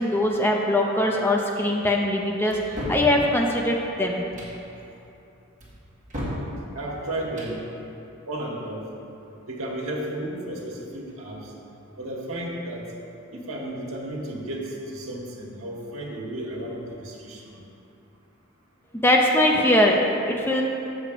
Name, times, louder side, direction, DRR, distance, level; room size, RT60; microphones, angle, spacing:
voice 1, 0.0-4.2 18.9-20.6, left 1 dB, 10° left, 0 dB, 0.5 m, -21 dB
sound 1, 2.5-3.1 4.2-4.6 5.6-6.5 7.2-7.6, equal, 35° right, 1.7 m, -33 dB
voice 2, 6.7-7.6 8.3-8.9 9.5-11.5 12.0-12.9 13.3-17.6, right 1 dB, 80° right, -3 dB, 1.5 m, -33 dB
7.2 x 4.8 x 6.8 m, 2.8 s
head